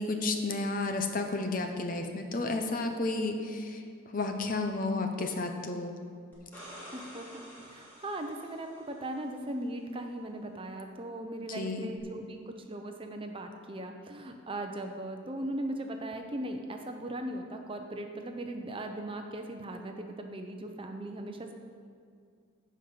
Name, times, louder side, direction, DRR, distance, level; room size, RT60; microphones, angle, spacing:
voice 1, 0.0-6.0 11.5-11.9, left 3 dB, 40° left, 5 dB, 0.8 m, -32 dB
sound 1, 6.3-9.1 12.0-12.1, equal, 10° left, 2.9 m, -49 dB
voice 2, 6.9-21.5, right 1 dB, 25° right, 4 dB, 0.7 m, -38 dB
15.0 x 5.2 x 5.9 m, 2.2 s
head